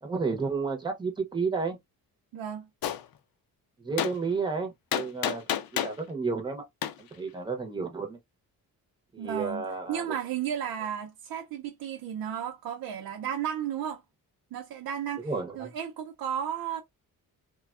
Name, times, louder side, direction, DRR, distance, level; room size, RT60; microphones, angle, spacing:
voice 1, 0.0-1.8 3.8-5.4 5.7-6.6 7.0-8.2 9.1-10.1 15.2-15.7, right 4 dB, 15° right, 0.7 m, -31 dB
voice 2, 2.3-2.7 9.2-14.0 14.5-15.3 15.6-16.8, right 9 dB, 90° right, 0.6 m, -33 dB
Gunshot gunfire, 2.8-3.0 4.0-4.1 4.9-6.0 6.8-6.9, left 10 dB, 75° left, 0.5 m, -29 dB
3.3 x 2.2 x 2.3 m
wide cardioid pair, 155°, 35 cm